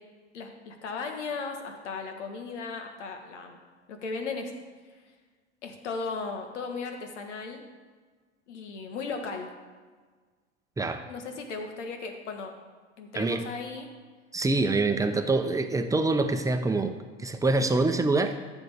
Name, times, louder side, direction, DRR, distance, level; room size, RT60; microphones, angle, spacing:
voice 1, 0.3-3.6 3.9-4.5 5.6-7.6 8.5-9.5 11.1-12.5 13.0-13.9, left 4 dB, 75° left, 4 dB, 1.5 m, -36 dB
voice 2, 13.1-13.5 14.3-16.9 17.2-18.3, right 3 dB, 10° right, 7 dB, 0.8 m, -25 dB
14.0 x 6.2 x 3.5 m, 1.5 s
hypercardioid pair, 80°, 35 cm